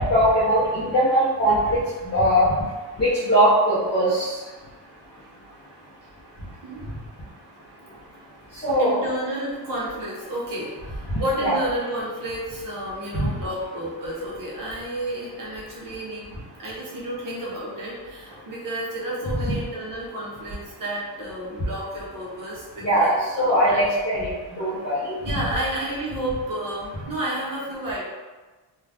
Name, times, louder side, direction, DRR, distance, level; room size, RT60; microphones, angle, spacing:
voice 1, 0.0-2.6 3.0-4.5 6.4-6.5 7.8-7.9 8.5-9.0 11.1-11.5 13.1-13.3 19.5-19.6 22.8-25.2, equal, 25° left, -11 dB, 0.6 m, -21 dB
voice 2, 8.8-16.3 16.6-24.0 25.2-28.0, right 1 dB, 50° right, -6 dB, 0.8 m, -31 dB
2.5 x 2.3 x 3.3 m, 1.3 s
cardioid pair, 170°, 44 cm